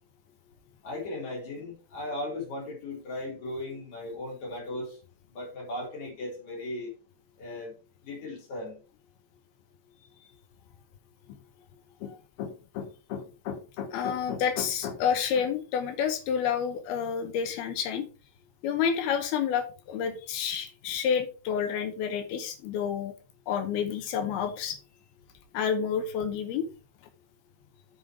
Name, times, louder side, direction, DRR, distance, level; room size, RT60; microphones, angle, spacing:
voice 1, 0.8-4.9 5.3-6.9 7.4-7.7 8.0-8.8, left 1 dB, 45° left, -2 dB, 4.8 m, -37 dB
voice 2, 12.0-18.1 18.6-23.1 23.5-24.8 25.5-26.7, left 7 dB, 75° left, 8 dB, 2.7 m, -29 dB
8.7 x 5.6 x 4.7 m, 0.36 s
omnidirectional pair, 4.8 m